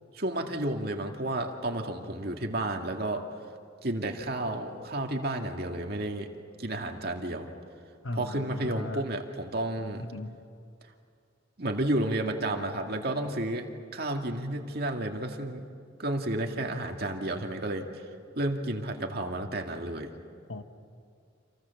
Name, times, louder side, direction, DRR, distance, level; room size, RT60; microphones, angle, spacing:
voice 1, 0.1-3.2 3.8-6.3 6.6-7.5 8.1-10.1 11.6-13.7 13.9-15.7 16.0-18.0 18.4-20.1, right 1 dB, 50° right, 3 dB, 2.2 m, -31 dB
voice 2, 8.0-9.0 10.0-10.4 20.5-20.6, left 2 dB, 80° left, 8 dB, 1.5 m, -37 dB
30.0 x 27.0 x 7.2 m, 2.3 s
head